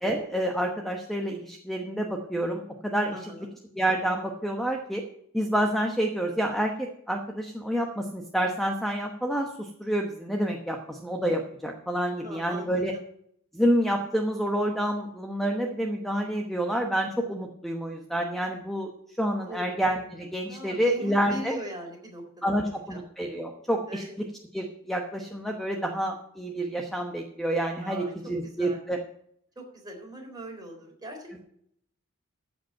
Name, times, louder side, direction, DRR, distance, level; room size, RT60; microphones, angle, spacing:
voice 1, 0.0-3.2 3.8-5.0 5.3-12.9 13.5-18.9 19.2-21.6 22.4-24.0 24.5-29.0, right 1 dB, ahead, 2 dB, 1.0 m, -28 dB
voice 2, 3.1-3.5 12.2-13.0 19.4-19.7 20.5-22.4 22.9-23.0 23.9-24.1 27.8-28.1 28.4-28.8 29.6-31.4, equal, 20° right, 0 dB, 3.8 m, -41 dB
14.5 x 5.3 x 7.3 m, 0.69 s
head